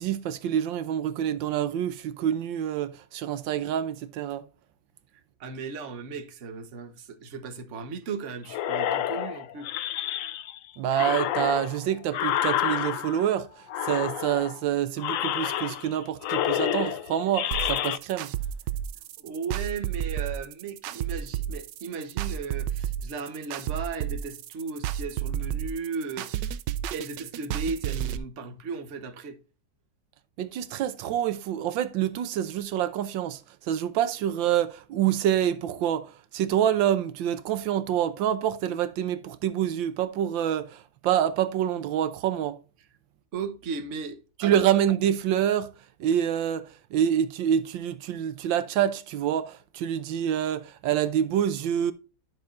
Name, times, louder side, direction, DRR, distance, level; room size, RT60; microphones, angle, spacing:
voice 1, 0.0-4.4 10.8-13.5 13.8-18.3 30.4-42.6 44.4-45.7 46.0-51.9, right 10 dB, 90° right, 1.5 m, -27 dB
voice 2, 5.4-9.7 19.2-26.5 26.9-29.4 43.3-44.5, right 5 dB, 45° right, 1.3 m, -36 dB
sound 1, 8.5-10.6 10.9-13.3 13.7-14.6 15.0-16.0 16.2-18.0, left 11 dB, 80° left, 0.7 m, -29 dB
sound 2, 17.5-28.2, right 10 dB, 75° right, 1.2 m, -31 dB
10.5 x 6.5 x 2.5 m
omnidirectional pair, 2.0 m